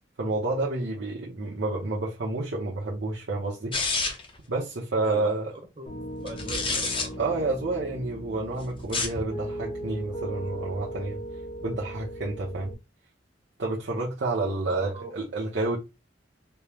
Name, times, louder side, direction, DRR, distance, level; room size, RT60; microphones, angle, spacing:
voice 1, 0.2-3.8 4.5-5.5 7.2-11.2 11.6-12.7 13.6-15.8, right 2 dB, 80° right, 0.8 m, -29 dB
sound 1, 3.7-4.4 6.3-7.1 8.8-9.2, left 3 dB, 30° left, 0.7 m, -28 dB
voice 2, 5.0-7.2 14.7-15.1, right 2 dB, 35° right, 0.8 m, -41 dB
Piano, 5.9-12.7, right 1 dB, 50° left, 1.7 m, -38 dB
4.3 x 2.1 x 3.4 m
head